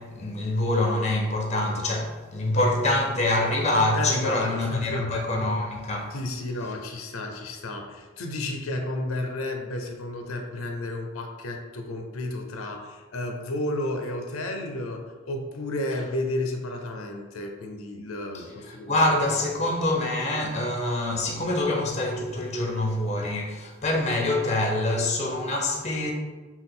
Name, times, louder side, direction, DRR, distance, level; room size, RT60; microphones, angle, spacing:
voice 1, 0.0-6.1 18.3-26.1, left 1 dB, 30° left, 0.7 m, -25 dB
voice 2, 4.0-5.2 6.1-18.9, left 1 dB, 85° left, 0.6 m, -32 dB
5.6 x 2.5 x 3.8 m
head